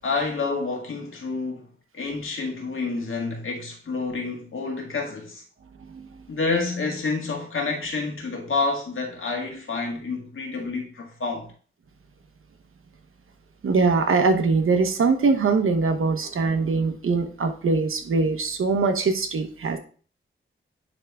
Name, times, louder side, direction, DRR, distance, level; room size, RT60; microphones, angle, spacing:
voice 1, 0.0-5.4 6.3-11.5, left 3 dB, 75° left, 1.8 m, -29 dB
voice 2, 13.6-19.8, right 4 dB, 80° right, 0.9 m, -22 dB
9.9 x 3.5 x 3.5 m
wide cardioid pair, 80°, 21 cm